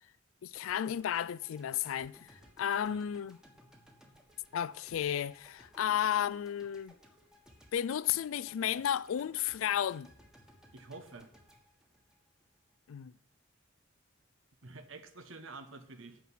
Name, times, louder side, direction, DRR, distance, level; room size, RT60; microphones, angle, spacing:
voice 1, 0.4-2.2 2.6-3.4 4.5-6.9 7.7-10.1 12.9-13.1, left 9 dB, 80° left, 0.3 m, -33 dB
sound 1, 0.5-12.8, equal, 5° right, 1.4 m, -61 dB
voice 2, 10.7-11.3 14.6-16.2, right 3 dB, 70° right, 1.1 m, -49 dB
9.3 x 5.9 x 7.4 m
head